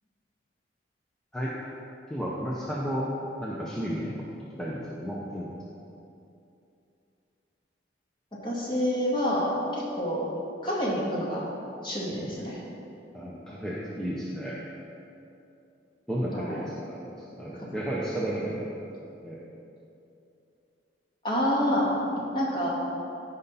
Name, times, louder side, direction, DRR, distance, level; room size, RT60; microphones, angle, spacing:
voice 1, 2.1-3.1 3.4-4.3 4.6-5.5 12.1-12.3 13.1-14.6 16.1-17.0 17.4-18.9 19.2-19.4, equal, 5° left, -6 dB, 0.8 m, -33 dB
voice 2, 8.4-10.3 10.6-11.4 11.8-12.6 16.3-16.7 21.2-21.9 22.3-22.7, equal, 25° left, -5 dB, 2.0 m, -27 dB
15.0 x 5.6 x 4.2 m, 2.8 s
head